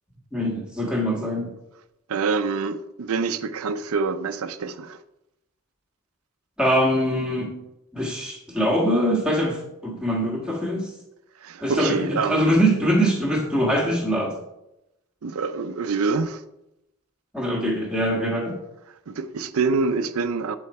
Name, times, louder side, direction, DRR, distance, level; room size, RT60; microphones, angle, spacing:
voice 1, 0.3-1.5 6.6-7.5 7.9-10.9 11.6-14.3 17.3-18.6, equal, 5° right, 1.4 m, -23 dB
voice 2, 2.1-5.0 11.4-12.6 15.2-16.4 19.1-20.6, right 4 dB, 70° right, 0.5 m, -26 dB
8.5 x 4.5 x 4.2 m
head